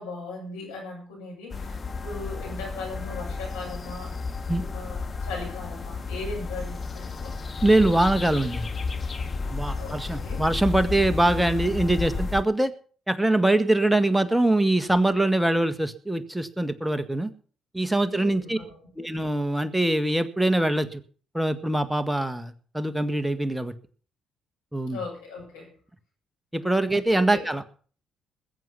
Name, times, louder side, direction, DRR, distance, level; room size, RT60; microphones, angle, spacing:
voice 1, 0.0-4.1 4.7-7.3 9.7-10.4 18.0-18.8 24.9-25.7 27.1-27.4, left 3 dB, 85° left, -2 dB, 7.9 m, -38 dB
sound 1, 1.5-12.4, left 4 dB, 35° left, 1.8 m, -32 dB
voice 2, 7.6-8.7 9.5-12.7 13.1-17.3 17.7-18.6 19.0-21.0 21.3-23.7 24.7-25.0 26.5-27.6, right 1 dB, 5° right, 11 dB, 1.7 m, -23 dB
20.5 x 7.9 x 5.8 m, 0.43 s
hypercardioid pair, 45°, 0 cm